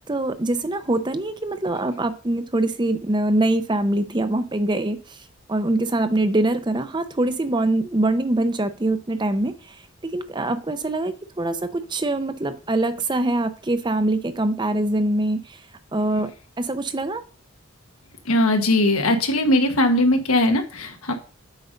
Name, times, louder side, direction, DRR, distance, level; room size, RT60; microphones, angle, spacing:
voice 1, 0.1-5.2 5.5-9.8 10.0-15.6 15.9-16.3 16.6-17.2, right 2 dB, 20° right, 10 dB, 0.6 m, -23 dB
voice 2, 18.2-21.1, left 1 dB, 85° left, 5 dB, 1.4 m, -19 dB
8.1 x 5.4 x 5.1 m, 0.37 s
head